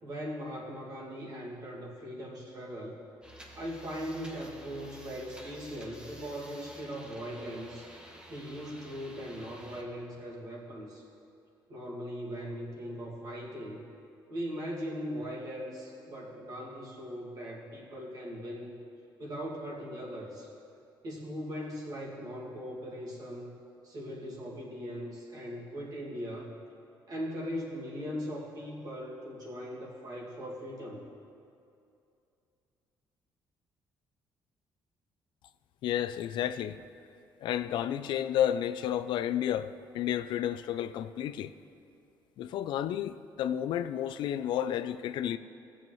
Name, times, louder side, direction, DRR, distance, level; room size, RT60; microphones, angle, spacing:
voice 1, 0.0-3.0 3.5-7.9 8.3-11.0 11.7-13.8 14.3-18.8 19.2-20.5 21.0-23.5 23.8-26.6 27.1-31.0, equal, 50° right, 2.1 m, -39 dB
sound 1, 3.2-9.8, right 1 dB, 10° right, 1.0 m, -51 dB
voice 2, 35.8-36.8 37.4-41.5 42.4-45.4, left 10 dB, 70° left, 0.3 m, -31 dB
17.0 x 7.2 x 3.1 m
cardioid pair, 135°, 8 cm